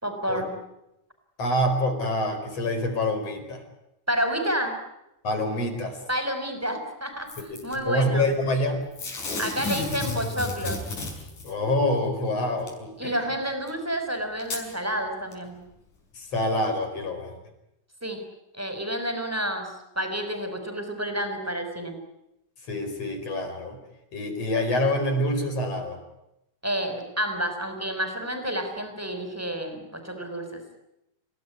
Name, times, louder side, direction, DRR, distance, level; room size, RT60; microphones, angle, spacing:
voice 1, 0.0-0.6 4.1-4.8 6.1-8.3 9.4-10.8 13.0-15.7 18.0-18.2 18.5-22.0 26.6-30.6, equal, 5° right, 6 dB, 5.2 m, -30 dB
voice 2, 1.4-3.6 5.2-6.0 7.5-8.8 11.4-13.2 16.1-17.3 22.7-23.8 24.1-26.0, left 1 dB, 55° left, 5 dB, 5.8 m, -26 dB
Packing tape duct tape / Tearing, 7.3-7.8 9.0-11.5 12.7-12.8 13.7-13.8 14.4-14.6 15.3-15.4, left 3 dB, 85° left, 7.4 m, -32 dB
29.5 x 18.0 x 9.7 m, 0.88 s
omnidirectional pair, 3.5 m